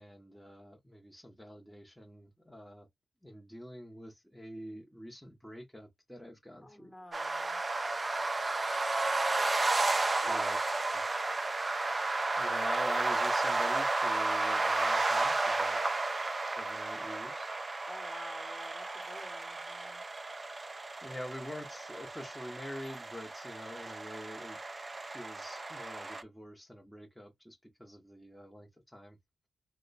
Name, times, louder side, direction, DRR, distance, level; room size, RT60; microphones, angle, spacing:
voice 1, 0.0-2.9 3.2-6.9 10.2-10.6 10.9-11.0 12.4-15.8 16.4-17.5 21.0-24.6 25.0-29.2, equal, 5° left, 0.9 m, -46 dB
voice 2, 6.6-7.6 10.2-10.4 17.9-20.0, left 1 dB, 20° left, 1.2 m, -50 dB
sound 1, 7.1-26.2, right 2 dB, 35° right, 0.5 m, -33 dB
2.9 x 2.1 x 4.0 m
cardioid pair, 55°, 0 cm